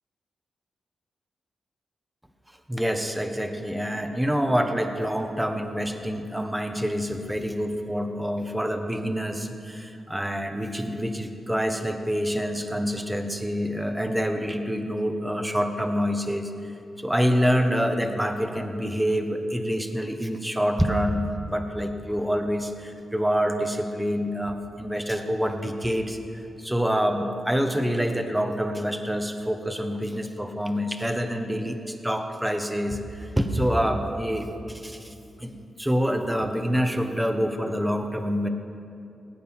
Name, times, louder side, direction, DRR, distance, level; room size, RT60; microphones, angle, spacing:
voice 1, 2.7-16.5 17.0-38.5, equal, 5° right, 5 dB, 1.3 m, -26 dB
18.0 x 9.3 x 5.8 m, 2.6 s
cardioid pair, 75°, 0 cm